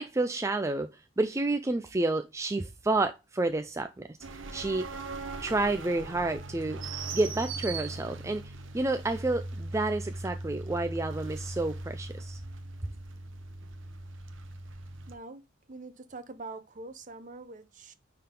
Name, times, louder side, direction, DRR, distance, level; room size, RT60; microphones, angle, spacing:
voice 1, 0.0-4.2 4.5-4.8 5.4-6.8 7.1-12.4, right 2 dB, 15° right, 0.4 m, -30 dB
sound 1, 4.2-15.2, right 2 dB, 75° right, 0.9 m, -39 dB
voice 2, 15.1-15.4 15.7-17.9, right 3 dB, 40° right, 0.8 m, -44 dB
9.8 x 3.8 x 3.8 m
head